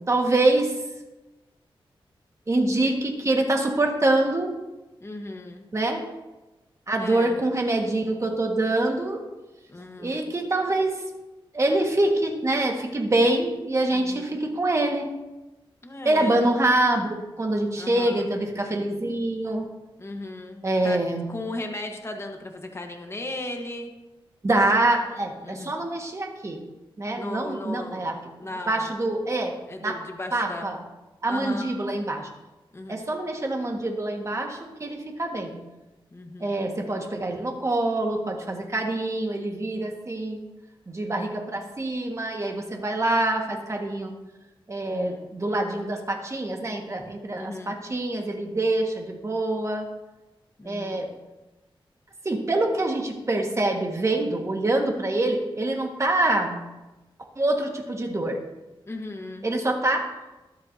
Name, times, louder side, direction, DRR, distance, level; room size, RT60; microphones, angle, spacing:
voice 1, 0.1-0.7 2.5-4.5 5.7-6.0 6.9-9.2 10.0-10.9 11.5-15.1 16.0-19.7 20.6-21.2 24.4-26.6 27.0-28.2 28.7-29.6 29.8-30.0 30.3-30.8 31.2-32.3 32.9-35.6 36.4-40.5 40.9-44.1 44.7-49.8 50.6-51.1 52.2-56.6 57.4-58.4 59.4-60.1, right 2 dB, 30° right, 2 dB, 1.7 m, -25 dB
voice 2, 5.0-5.6 7.0-7.4 9.7-10.3 13.9-14.4 15.8-16.5 17.8-18.3 20.0-23.9 25.4-25.7 27.1-29.0 29.7-30.7 31.3-31.7 32.7-33.0 36.1-36.6 41.0-41.3 44.9-45.2 47.3-47.8 50.6-51.1 58.8-59.5, left 2 dB, 30° left, 3 dB, 1.3 m, -37 dB
22.5 x 7.7 x 2.8 m, 1.1 s
wide cardioid pair, 120°, 9 cm